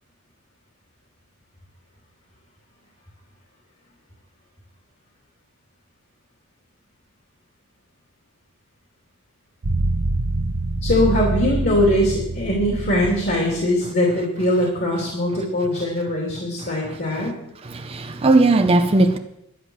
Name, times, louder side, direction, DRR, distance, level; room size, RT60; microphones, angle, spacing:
sound 1, 9.6-13.7, right 2 dB, 85° right, 1.0 m, -25 dB
voice 1, 10.8-17.3, left 1 dB, 45° left, -2 dB, 3.0 m, -21 dB
voice 2, 17.7-19.2, right 2 dB, 25° right, 5 dB, 0.6 m, -17 dB
11.5 x 9.7 x 6.4 m, 0.81 s
head